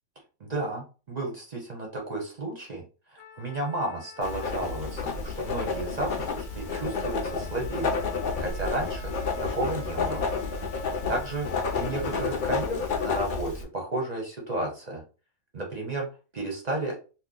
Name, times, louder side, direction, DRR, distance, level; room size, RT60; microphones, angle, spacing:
voice 1, 0.4-2.8 3.1-8.0 8.4-9.1 9.4-10.3 11.1-11.5 11.7-15.0 15.5-16.1 16.3-17.0, right 2 dB, 40° right, 0 dB, 0.6 m, -32 dB
Trumpet, 3.2-12.7, left 7 dB, 80° left, 1.0 m, -48 dB
Writing, 4.2-13.6, left 4 dB, 50° left, 0.6 m, -30 dB
2.9 x 2.1 x 3.7 m, 0.34 s
omnidirectional pair, 1.4 m